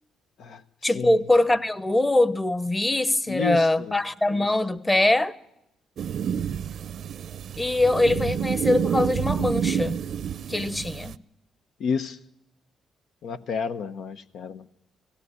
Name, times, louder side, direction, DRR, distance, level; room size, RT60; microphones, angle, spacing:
voice 1, 0.8-5.3 7.6-10.0 10.5-11.2, left 2 dB, 15° left, 1.0 m, -22 dB
voice 2, 3.3-4.0 4.3-4.5 11.8-12.2 13.2-14.7, left 6 dB, 70° left, 0.9 m, -31 dB
sound 1, 6.0-11.2, right 8 dB, 60° right, 0.7 m, -29 dB
17.5 x 17.0 x 9.6 m
cardioid pair, 90°, 0 cm